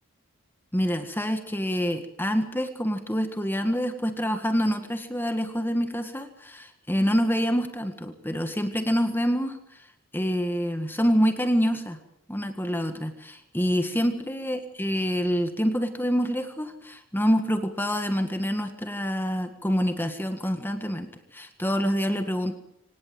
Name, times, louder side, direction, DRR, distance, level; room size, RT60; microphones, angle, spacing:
voice 1, 0.7-9.8 10.1-12.0 12.3-22.5, equal, 10° left, 7 dB, 1.7 m, -26 dB
25.5 x 18.5 x 7.8 m, 0.77 s
head